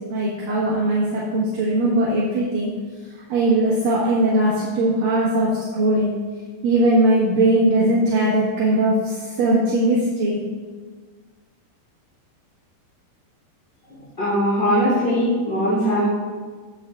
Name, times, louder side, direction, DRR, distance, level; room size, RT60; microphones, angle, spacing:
voice 1, 0.1-2.7 3.3-6.1 6.6-10.4, right 1 dB, 60° right, -7 dB, 2.7 m, -19 dB
voice 2, 14.2-16.1, equal, 15° left, -10 dB, 2.7 m, -20 dB
16.0 x 8.4 x 2.5 m, 1.5 s
omnidirectional pair, 5.2 m